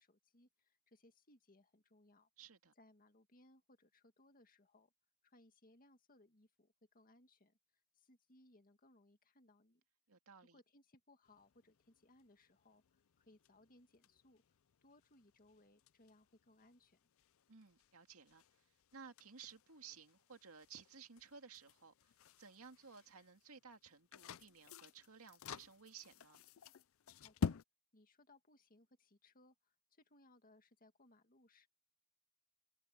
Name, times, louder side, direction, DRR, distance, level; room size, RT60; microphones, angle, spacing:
voice 1, 0.0-2.3 2.8-4.9 5.2-7.6 7.9-9.8 10.5-14.4 14.8-17.0 27.1-27.6 27.9-31.7, left 2 dB, 40° left, 1.9 m, -68 dB
voice 2, 2.4-2.7 10.1-10.6 17.5-18.4 18.9-22.1 22.4-26.4, right 6 dB, 90° right, 2.1 m, -57 dB
sound 1, 11.2-27.6, left 5 dB, 70° left, 0.5 m, -50 dB
head